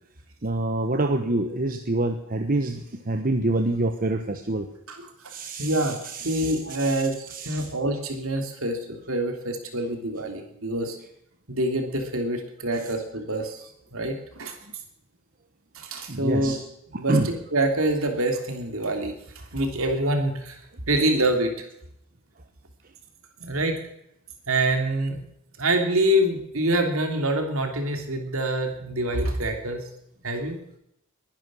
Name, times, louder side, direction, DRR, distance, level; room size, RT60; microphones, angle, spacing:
voice 1, 0.4-4.7 5.3-7.0 7.3-7.7 16.1-16.6 17.1-17.3, right 2 dB, 40° right, 6 dB, 1.1 m, -26 dB
voice 2, 4.9-5.3 5.6-11.0 11.5-13.6 13.9-14.5 15.7-16.6 16.9-19.1 19.5-20.6 20.9-21.7 23.4-23.8 24.5-25.2 25.6-29.8 30.2-30.6, right 1 dB, 65° right, 5 dB, 3.2 m, -26 dB
21.5 x 11.0 x 6.3 m, 0.76 s
head